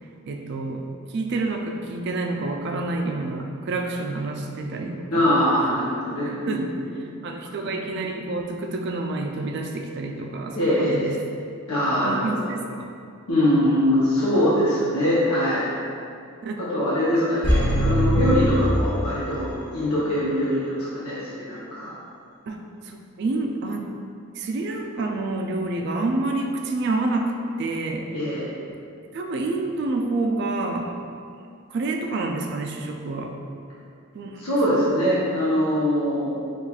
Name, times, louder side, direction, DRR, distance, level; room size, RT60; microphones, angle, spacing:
voice 1, 0.3-0.8 1.1-5.3 6.5-6.6 7.2-11.1 12.0-12.9 16.4-16.6 22.5-22.6 22.8-23.9 24.4-27.3 27.6-28.2 29.1-30.9 31.7-33.3 34.1-34.4, right 2 dB, 50° right, 2 dB, 0.3 m, -28 dB
voice 2, 5.1-6.6 7.0-7.2 7.7-7.8 10.5-11.1 11.7-12.5 13.3-15.7 16.6-21.9 28.1-28.4 34.4-36.3, equal, 85° left, -9 dB, 0.8 m, -23 dB
sound 1, 17.4-19.6 19.9-20.0, equal, 35° left, 0.8 m, -22 dB
5.6 x 2.4 x 2.3 m, 2.4 s
head